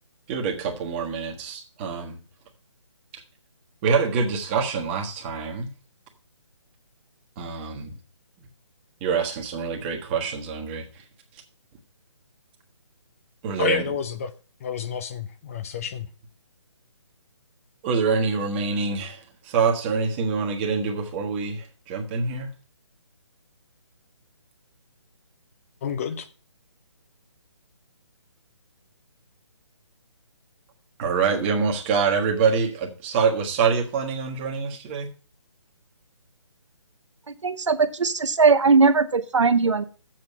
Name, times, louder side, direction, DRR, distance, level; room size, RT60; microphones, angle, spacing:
voice 1, 0.3-2.2 3.8-5.7 7.4-7.9 9.0-10.8 13.4-13.9 17.8-22.5 31.0-35.1, right 5 dB, 25° right, 1.4 m, -25 dB
voice 2, 13.6-14.3 14.6-16.1 25.8-26.3, left 7 dB, 30° left, 0.6 m, -29 dB
voice 3, 37.4-39.8, right 4 dB, 75° right, 0.8 m, -19 dB
7.6 x 5.8 x 6.6 m
figure-of-eight pair, 145°, 15 cm